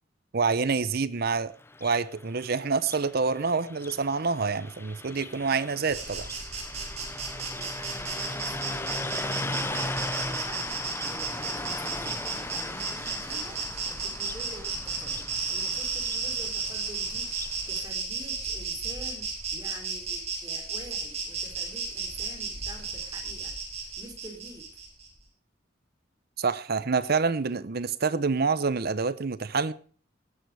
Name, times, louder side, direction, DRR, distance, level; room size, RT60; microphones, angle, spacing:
voice 1, 0.3-1.5 1.8-6.3 26.4-29.7, right 4 dB, 55° right, 0.8 m, -27 dB
Car passing by, 1.6-17.6, left 2 dB, 15° left, 0.7 m, -38 dB
Insect, 5.9-25.1, right 4 dB, 35° right, 4.7 m, -34 dB
voice 2, 7.3-10.7 11.1-13.6 13.9-24.8, right 2 dB, 20° right, 3.8 m, -47 dB
18.5 x 9.2 x 4.7 m
head